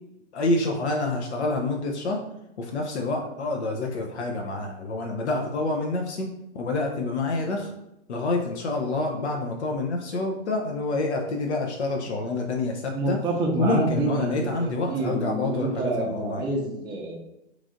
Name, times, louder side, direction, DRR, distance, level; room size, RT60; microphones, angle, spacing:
voice 1, 0.3-2.2 2.6-6.3 6.5-7.7 8.1-13.2 13.6-16.4, left 2 dB, 85° left, 1 dB, 0.7 m, -27 dB
voice 2, 12.9-17.2, right 2 dB, 15° right, -1 dB, 0.5 m, -28 dB
3.2 x 2.5 x 3.7 m, 0.85 s
hypercardioid pair, 120°, 33 cm